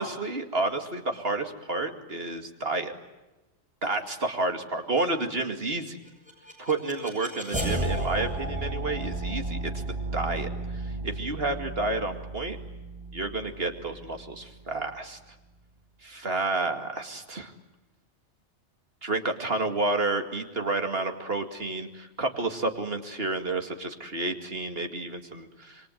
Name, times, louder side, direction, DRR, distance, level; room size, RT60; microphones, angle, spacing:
voice 1, 0.0-2.9 3.8-6.0 6.6-9.8 10.1-12.6 13.1-15.2 16.0-17.5 19.0-25.9, right 2 dB, 55° right, 6 dB, 2.5 m, -30 dB
sound 1, 6.1-15.0, right 2 dB, 5° right, 7.5 m, -34 dB
27.5 x 23.5 x 9.2 m, 1.1 s
omnidirectional pair, 1.2 m